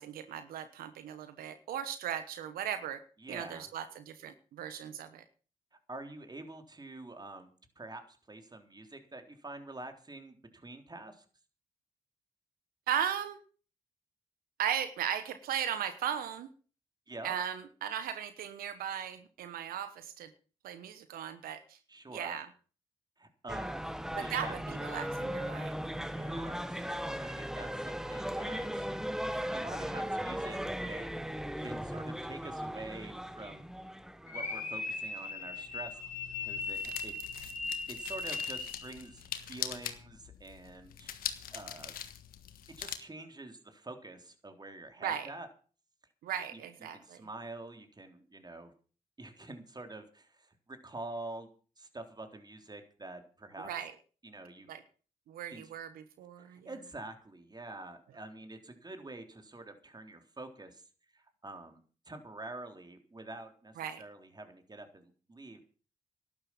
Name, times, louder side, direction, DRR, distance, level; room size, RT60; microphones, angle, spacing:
voice 1, 0.0-3.0 3.3-5.2 12.9-13.4 14.6-16.5 17.2-20.3 20.6-21.8 22.1-22.5 24.1-25.7 45.0-45.3 46.2-47.2 53.6-53.9 54.7-54.8 55.3-56.6 63.8-64.0, right 9 dB, 90° right, 11 dB, 1.1 m, -37 dB
voice 2, 3.2-3.7 5.9-7.5 7.8-11.3 17.1-17.4 21.9-22.4 23.2-23.9 24.2-24.6 26.1-28.9 29.5-31.2 31.6-33.7 34.2-36.0 36.4-41.1 41.5-41.9 42.8-45.5 46.5-46.6 46.9-48.7 49.2-51.5 51.8-53.7 54.2-54.7 55.5-55.7 56.5-60.8 61.1-65.6, right 2 dB, 30° right, 7 dB, 3.7 m, -47 dB
sound 1, 23.5-35.0 35.2-35.3, equal, 5° right, 1.2 m, -37 dB
sound 2, 34.3-39.0, left 4 dB, 60° left, 3.6 m, -38 dB
sound 3, 35.4-43.0, left 10 dB, 90° left, 1.4 m, -43 dB
12.5 x 11.0 x 7.2 m, 0.39 s
supercardioid pair, 55°, 15 cm